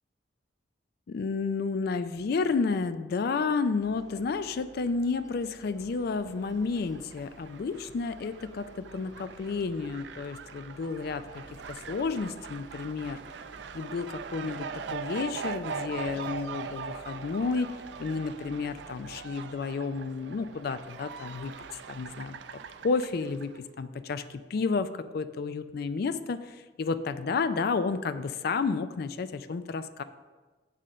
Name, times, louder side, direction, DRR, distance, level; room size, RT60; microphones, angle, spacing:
voice 1, 1.1-11.4 11.7-13.2 13.7-17.7 18.0-21.5 21.9-30.0, left 4 dB, 60° left, 12 dB, 0.4 m, -31 dB
sound 1, 3.8-19.4, right 1 dB, 20° left, 1.9 m, -55 dB
Fowl, 6.2-23.6, right 5 dB, 70° right, 0.4 m, -42 dB
8.6 x 3.7 x 6.4 m, 1.3 s
head